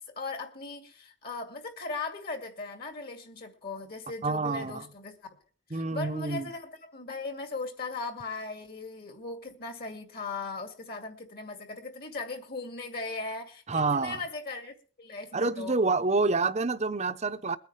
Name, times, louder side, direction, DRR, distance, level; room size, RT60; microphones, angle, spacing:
voice 1, 0.0-5.2 5.7-15.8, left 3 dB, 45° left, 2.3 m, -38 dB
voice 2, 4.2-4.9 5.7-6.5 13.7-14.2 15.3-17.6, right 3 dB, 30° right, 0.8 m, -28 dB
22.0 x 9.4 x 3.3 m
head